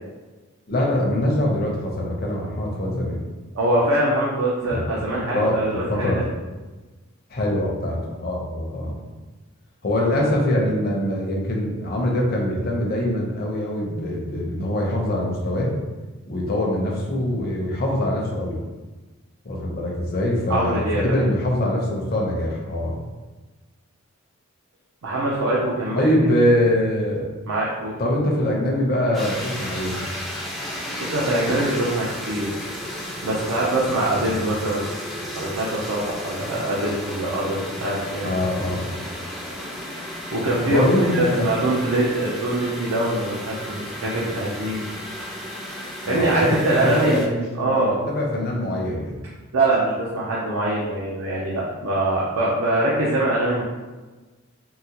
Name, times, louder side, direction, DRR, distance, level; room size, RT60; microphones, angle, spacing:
voice 1, 0.7-3.2 4.6-4.8 5.1-6.3 7.3-9.0 9.8-15.7 16.3-18.6 19.4-23.0 25.9-27.3 28.0-30.0 34.2-34.4 38.2-39.1 40.7-41.5 46.1-49.2, left 1 dB, 45° left, -2 dB, 0.6 m, -23 dB
voice 2, 3.5-6.3 20.5-21.2 25.0-26.1 27.5-27.9 31.0-32.5 33.2-34.9 35.3-38.4 40.3-44.9 46.1-47.3 47.6-48.0 49.5-53.6, right 1 dB, 80° right, -5 dB, 0.6 m, -23 dB
sound 1, 29.1-47.3, equal, ahead, 0.4 m, -33 dB
3.8 x 2.1 x 2.8 m, 1.2 s
head